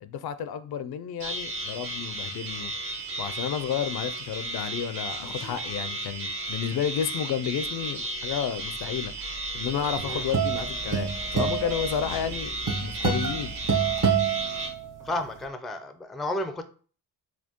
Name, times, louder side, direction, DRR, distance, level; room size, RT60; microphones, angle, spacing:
voice 1, 0.0-2.7 3.2-13.5, left 8 dB, 60° left, 13 dB, 0.5 m, -31 dB
sound 1, 1.2-14.7, right 2 dB, 60° right, 1.6 m, -34 dB
sound 2, 7.8-14.2, right 2 dB, 85° right, 1.2 m, -44 dB
sound 3, 9.7-15.2, right 6 dB, 45° right, 1.0 m, -27 dB
voice 2, 15.0-16.6, left 1 dB, ahead, 8 dB, 0.4 m, -32 dB
4.3 x 2.3 x 2.9 m, 0.41 s
supercardioid pair, 55°, 43 cm